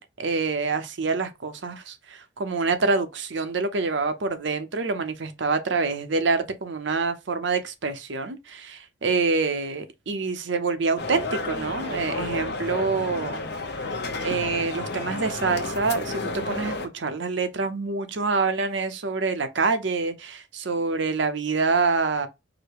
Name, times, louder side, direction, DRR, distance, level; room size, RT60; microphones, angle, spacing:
voice 1, 0.0-13.5 14.2-22.3, right 4 dB, 65° right, 0.7 m, -26 dB
sound 1, 11.0-16.9, left 2 dB, 55° left, 0.8 m, -31 dB
4.9 x 2.1 x 4.7 m
head